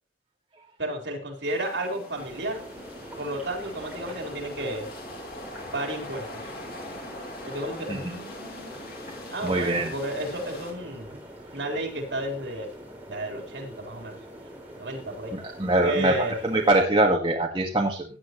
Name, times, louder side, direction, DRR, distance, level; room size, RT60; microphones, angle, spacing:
voice 1, 0.8-2.6 3.2-4.9 5.7-6.5 7.4-8.7 9.3-11.2 11.5-12.7 13.1-14.2 14.8-15.3 15.8-16.4, right 1 dB, 75° right, 2 dB, 4.3 m, -32 dB
sound 1, 1.4-10.7, left 1 dB, 55° left, 2.6 m, -42 dB
sound 2, 2.1-16.8, right 1 dB, 10° right, 4.0 m, -44 dB
voice 2, 9.4-9.9 15.3-16.1 16.4-18.0, right 2 dB, 25° right, -1 dB, 2.0 m, -23 dB
17.0 x 9.8 x 3.1 m, 0.36 s
head